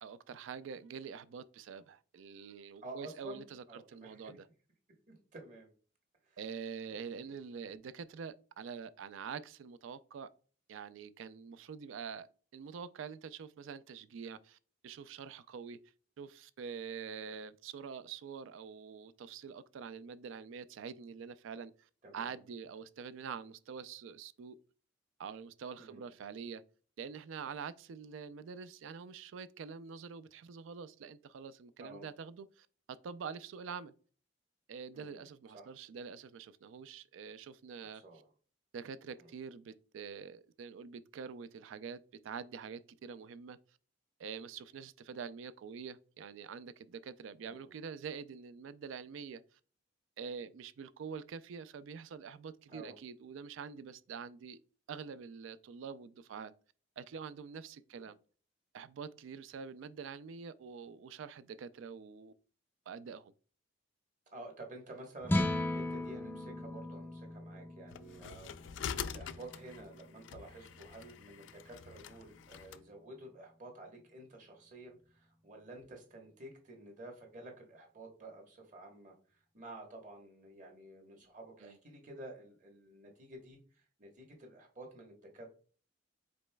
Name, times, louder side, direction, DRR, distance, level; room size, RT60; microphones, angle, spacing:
voice 1, 0.0-4.5 6.4-10.3 10.7-12.3 12.5-14.6 14.8-15.8 16.2-24.6 25.2-26.6 27.0-33.9 34.7-38.0 38.7-43.6 44.2-49.4 50.2-54.6 54.9-56.5 57.0-58.2 58.7-62.3 62.9-63.3 81.6-81.8, right 6 dB, 75° right, 0.3 m, -46 dB
voice 2, 2.8-4.2 5.1-5.7 6.2-6.4 6.9-7.0 7.2-7.4 22.0-22.4 25.8-26.1 31.8-32.1 34.9-35.2 35.5-35.7 37.8-38.2 39.1-39.3 47.4-47.7 52.7-53.0 57.9-58.1 64.3-85.5, right 2 dB, 40° right, 1.2 m, -51 dB
sound 1, 65.2-71.6, left 1 dB, 10° left, 0.5 m, -38 dB
sound 2, 67.9-72.8, left 8 dB, 65° left, 0.3 m, -45 dB
5.1 x 4.0 x 2.2 m
head